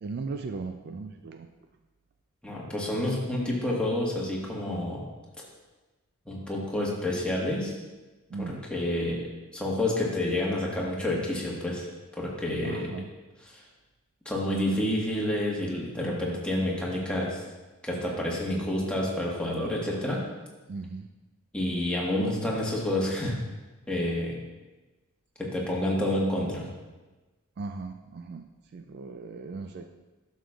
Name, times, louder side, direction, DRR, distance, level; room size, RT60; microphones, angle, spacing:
voice 1, 0.0-1.5 8.3-8.6 12.6-13.1 20.7-21.1 27.6-29.9, right 4 dB, 50° right, 7 dB, 0.3 m, -37 dB
voice 2, 2.4-5.0 6.3-7.7 8.4-9.2 9.5-11.8 12.2-12.9 14.2-17.4 17.8-20.2 21.5-23.4 23.9-24.3 25.4-26.6, left 1 dB, 5° left, -4 dB, 1.4 m, -29 dB
11.0 x 6.5 x 2.4 m, 1.2 s
head